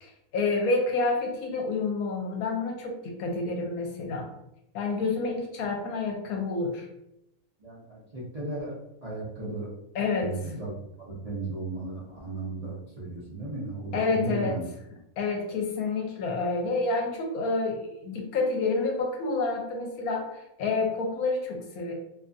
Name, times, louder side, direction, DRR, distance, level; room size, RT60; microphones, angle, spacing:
voice 1, 0.0-4.3 4.7-6.9 9.9-10.3 13.9-14.6 15.2-21.9, left 3 dB, 75° left, 1 dB, 1.1 m, -28 dB
voice 2, 7.6-9.7 10.2-10.7 11.0-14.6, right 2 dB, 50° right, -8 dB, 0.4 m, -35 dB
2.7 x 2.4 x 2.5 m, 0.84 s
omnidirectional pair, 1.5 m